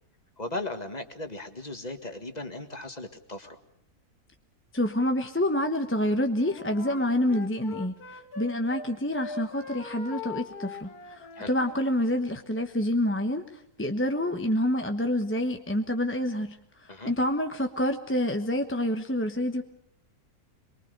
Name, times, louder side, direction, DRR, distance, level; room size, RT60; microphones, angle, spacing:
voice 1, 0.4-3.6 11.4-11.5 16.9-17.1, left 2 dB, 25° left, 7 dB, 1.9 m, -37 dB
voice 2, 4.7-13.4 13.8-16.6 17.0-19.6, left 1 dB, 10° left, 6 dB, 1.0 m, -27 dB
Wind instrument woodwind instrument, 6.3-8.9 9.1-11.9, left 5 dB, 80° left, 2.3 m, -41 dB
23.5 x 23.5 x 6.6 m, 0.75 s
omnidirectional pair, 1.6 m